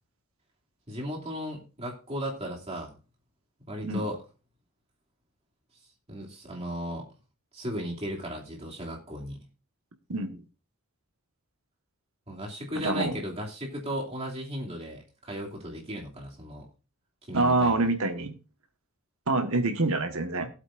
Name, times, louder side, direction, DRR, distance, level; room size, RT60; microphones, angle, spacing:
voice 1, 0.9-3.0 3.7-4.2 6.1-7.0 7.5-9.4 12.3-16.7 17.3-17.9, equal, 30° right, -2 dB, 2.8 m, -36 dB
voice 2, 12.8-13.2 17.3-18.3 19.3-20.5, right 2 dB, 70° right, 7 dB, 1.5 m, -26 dB
18.0 x 8.2 x 2.6 m, 0.34 s
head